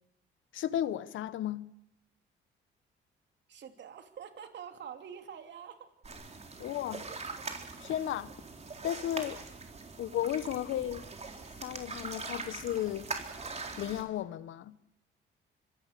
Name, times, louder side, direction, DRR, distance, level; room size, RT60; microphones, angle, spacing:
voice 1, 0.5-1.7 6.6-7.0 7.8-8.3 8.8-9.4 10.0-11.0 11.6-13.1 13.8-14.7, left 11 dB, 75° left, 1.2 m, -34 dB
voice 2, 3.5-5.9, right 8 dB, 65° right, 3.2 m, -46 dB
sound 1, 6.0-14.0, right 4 dB, 35° right, 4.2 m, -42 dB
25.5 x 24.0 x 6.8 m
cardioid pair, 90°, 20 cm